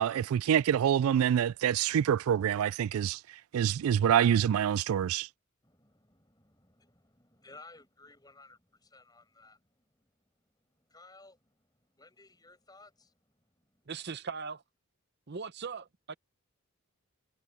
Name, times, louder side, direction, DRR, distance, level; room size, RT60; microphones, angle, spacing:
voice 1, 0.0-5.3, right 9 dB, 80° right, 0.3 m, -26 dB
voice 2, 5.6-13.9, left 3 dB, 20° left, 7.1 m, -58 dB
voice 3, 13.9-14.6 15.3-16.1, right 5 dB, 50° right, 0.7 m, -39 dB
head